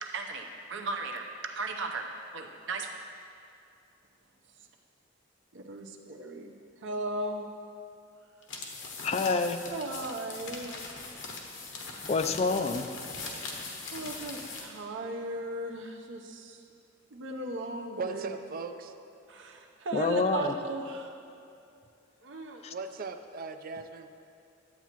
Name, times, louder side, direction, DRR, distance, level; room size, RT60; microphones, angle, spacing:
voice 1, 0.0-2.0 2.3-2.9 5.5-7.5 9.7-10.7 13.9-16.6 17.1-18.3 19.3-21.2 22.2-22.7, right 2 dB, 70° right, 3 dB, 0.8 m, -37 dB
sound 1, 8.4-14.8, left 3 dB, 70° left, 1.1 m, -41 dB
voice 2, 9.0-9.6 12.1-12.9 19.9-20.5 22.6-22.7, left 4 dB, 35° left, 8 dB, 0.4 m, -27 dB
voice 3, 18.0-19.0 22.7-24.1, right 4 dB, 45° right, 8 dB, 0.4 m, -38 dB
11.0 x 8.2 x 3.0 m, 2.5 s
head